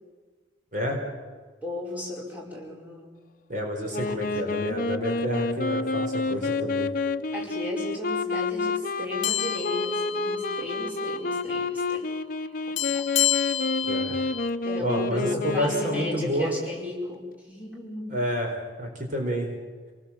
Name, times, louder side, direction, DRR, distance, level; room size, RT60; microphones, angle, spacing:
voice 1, 1.6-3.1 4.1-4.8 7.3-12.1 12.4-13.0 14.6-18.1, left 1 dB, 10° right, -3 dB, 4.7 m, -35 dB
voice 2, 3.5-6.9 13.8-14.2 14.8-16.5 18.1-19.5, equal, 40° right, 1 dB, 4.5 m, -29 dB
Wind instrument woodwind instrument, 3.9-16.4, left 3 dB, 45° left, 0.8 m, -29 dB
sound 1, 9.2-10.9 11.2-11.4 12.8-14.5, left 12 dB, 80° left, 0.7 m, -29 dB
27.5 x 19.5 x 7.4 m, 1.4 s
head